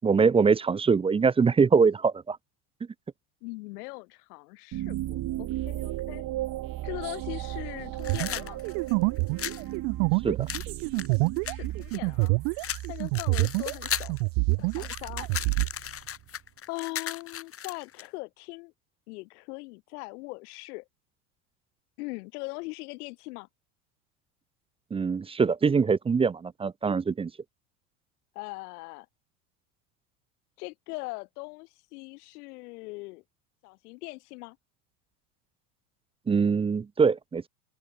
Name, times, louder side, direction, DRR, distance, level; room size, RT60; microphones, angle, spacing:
voice 1, 0.0-2.4 10.2-10.5 24.9-27.3 36.3-37.5, right 5 dB, 10° right, 0.5 m, -23 dB
voice 2, 3.4-6.2 6.8-8.6 11.5-14.2 14.6-15.3 16.7-18.7 19.1-20.9 22.0-23.5 28.4-29.1 30.6-33.2 33.6-34.6, left 25 dB, 70° left, 5.3 m, -40 dB
sound 1, 4.7-16.3, right 15 dB, 45° right, 4.9 m, -36 dB
sound 2, 8.0-9.6 10.5-12.3 12.6-14.2 14.5-18.1, left 9 dB, 30° left, 1.8 m, -36 dB
sound 3, 8.1-13.8 14.1-15.7, right 40 dB or more, 65° right, 2.9 m, -27 dB
open air
supercardioid pair, 110°, 47 cm